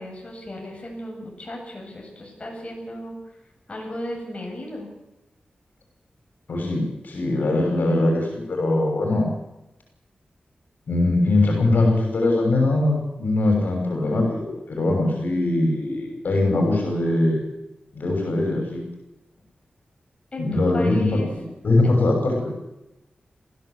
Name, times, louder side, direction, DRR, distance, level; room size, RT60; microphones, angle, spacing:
voice 1, 0.0-3.2 3.7-4.9 20.3-21.3 21.8-22.0, left 1 dB, 40° left, 0 dB, 7.9 m, -35 dB
voice 2, 6.5-9.3 10.9-17.4 17.9-18.8 20.4-21.2 21.6-22.5, left 2 dB, 80° left, 2 dB, 6.1 m, -21 dB
20.0 x 16.0 x 8.3 m, 0.93 s
wide cardioid pair, 70°, 3 cm